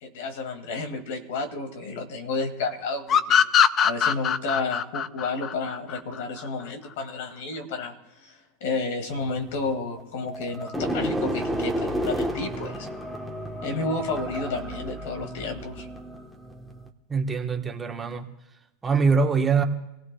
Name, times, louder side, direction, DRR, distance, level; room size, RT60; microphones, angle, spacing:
voice 1, 0.0-3.5 3.8-12.9 13.6-15.9, left 3 dB, 75° left, 6 dB, 2.1 m, -31 dB
sound 1, 3.1-6.5, left 8 dB, 30° left, 0.5 m, -21 dB
sound 2, 9.1-16.9, equal, 5° left, 1.2 m, -32 dB
voice 2, 17.1-18.3 18.8-19.6, right 5 dB, 15° right, 3 dB, 1.2 m, -23 dB
25.5 x 16.5 x 2.3 m, 0.93 s
supercardioid pair, 130°, 0 cm